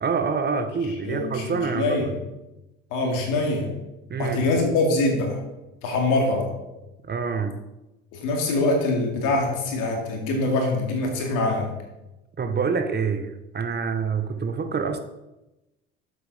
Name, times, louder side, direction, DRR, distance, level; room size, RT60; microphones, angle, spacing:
voice 1, 0.0-2.1 4.1-4.5 7.0-7.6 12.4-15.0, right 5 dB, 30° right, 1.0 m, -26 dB
voice 2, 1.1-2.1 2.9-3.7 4.2-5.4 5.8-6.5 8.1-11.7, left 2 dB, 70° left, 2.4 m, -24 dB
7.8 x 5.7 x 5.4 m
hypercardioid pair, 65°, 32 cm